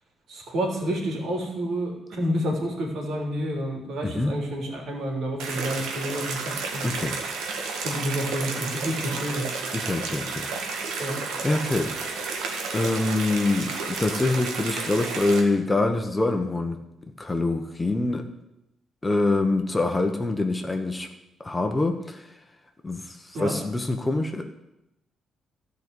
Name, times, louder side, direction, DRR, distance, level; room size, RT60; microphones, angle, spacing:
voice 1, 0.3-6.9 7.8-9.5 11.0-11.2 23.3-23.6, equal, 70° right, 0 dB, 3.6 m, -29 dB
sound 1, 5.4-15.4, right 4 dB, 90° right, 1.7 m, -31 dB
voice 2, 6.8-7.2 9.7-10.5 11.4-11.9 12.7-16.8 17.2-18.2 19.0-21.1 21.4-22.3 22.8-24.4, left 2 dB, 15° left, 5 dB, 1.2 m, -25 dB
13.0 x 5.4 x 8.2 m, 0.89 s
cardioid pair, 90°, 0 cm